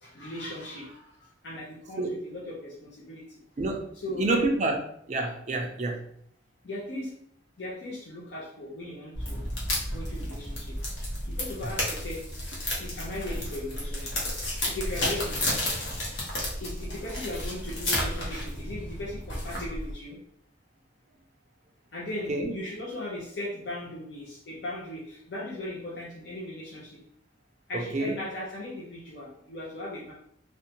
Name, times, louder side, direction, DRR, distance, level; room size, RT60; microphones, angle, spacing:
voice 1, 0.0-3.3 3.9-4.4 6.6-7.2 7.6-9.4 9.9-10.8 11.3-12.2 12.8-14.2 14.7-15.4 16.6-20.2 21.9-27.0 27.7-30.1, left 1 dB, 60° left, -5 dB, 0.6 m, -38 dB
voice 2, 3.6-3.9 4.2-4.8 5.1-6.0 22.3-22.5 27.7-28.2, right 2 dB, 40° right, 2 dB, 0.4 m, -28 dB
sound 1, 9.1-19.9, left 1 dB, 85° left, 0.9 m, -32 dB
2.6 x 2.1 x 2.7 m, 0.68 s
head